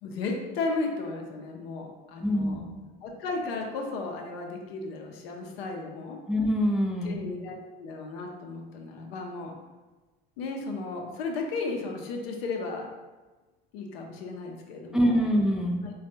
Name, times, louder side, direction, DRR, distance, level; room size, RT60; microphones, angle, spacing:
voice 1, 0.0-2.7 3.0-6.2 7.0-9.5 10.4-12.9 13.7-15.2 15.8-15.9, left 3 dB, 75° left, 1 dB, 0.6 m, -34 dB
voice 2, 2.2-2.6 6.3-7.2 14.9-15.8, equal, ahead, -1 dB, 0.4 m, -24 dB
3.3 x 2.3 x 2.7 m, 1.2 s
hypercardioid pair, 70°, 30 cm